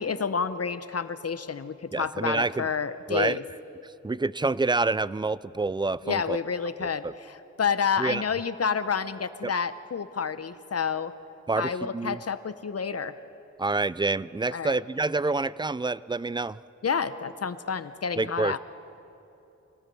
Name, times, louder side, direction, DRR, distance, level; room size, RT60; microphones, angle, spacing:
voice 1, 0.0-3.4 6.0-11.1 11.6-13.1 14.5-14.8 16.8-18.6, left 6 dB, 55° left, 13 dB, 0.9 m, -29 dB
voice 2, 1.9-2.7 3.1-3.4 3.8-6.4 6.8-7.1 8.0-8.2 9.4-9.5 11.5-12.2 13.6-16.6 18.2-18.6, right 3 dB, 15° right, 19 dB, 0.4 m, -27 dB
25.5 x 18.5 x 5.5 m, 3.0 s
cardioid pair, 60°, 29 cm